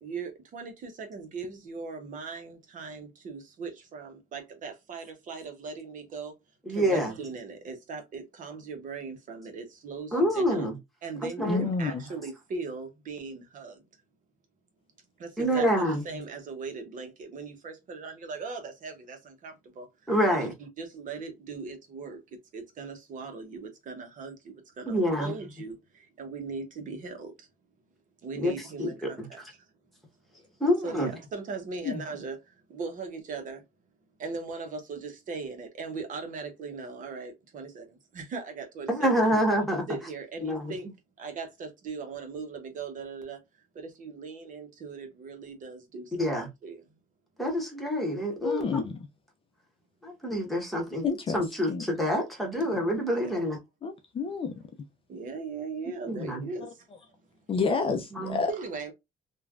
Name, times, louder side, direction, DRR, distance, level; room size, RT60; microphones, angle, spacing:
voice 1, 0.0-6.3 6.7-10.7 11.0-13.8 15.2-19.9 20.4-22.2 22.5-24.3 24.8-25.7 26.2-27.3 28.2-29.4 30.8-32.4 32.7-33.6 34.2-37.9 38.1-38.9 39.9-40.9 41.2-43.4 43.8-46.1 46.6-46.8 52.5-52.8 55.1-56.7 58.5-58.9, right 4 dB, 50° right, 0.9 m, -39 dB
voice 2, 6.7-7.1 10.1-10.8 11.2-11.7 15.4-16.0 20.1-20.5 24.9-25.3 28.4-28.5 28.8-29.3 30.6-31.1 38.9-39.8 40.4-40.7 46.2-46.5 47.4-48.9 50.0-51.0 51.3-53.6 56.1-56.5 58.1-58.4, equal, ahead, 1.2 m, -27 dB
voice 3, 11.5-12.0 31.8-32.0 48.4-49.0 51.0-51.4 51.7-51.9 53.8-54.5 57.5-58.5, left 5 dB, 35° left, 0.5 m, -29 dB
3.1 x 2.3 x 2.4 m
cardioid pair, 110°, 17 cm